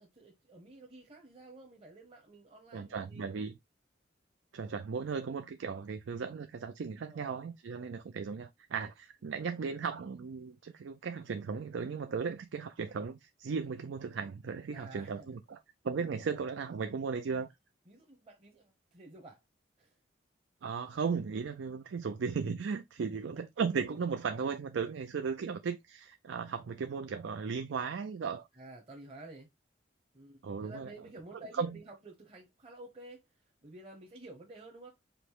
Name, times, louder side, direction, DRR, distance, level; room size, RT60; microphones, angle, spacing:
voice 1, 0.0-3.4 7.1-7.4 14.7-15.4 16.2-16.4 17.9-19.4 19.8-20.0 23.0-23.2 28.5-29.5 30.1-34.9, right 2 dB, 30° right, 0.9 m, -52 dB
voice 2, 2.7-3.5 4.5-15.6 15.8-17.5 20.6-28.5 30.4-30.9 31.5-31.7, right 5 dB, 80° right, 0.4 m, -36 dB
5.1 x 2.1 x 4.5 m
head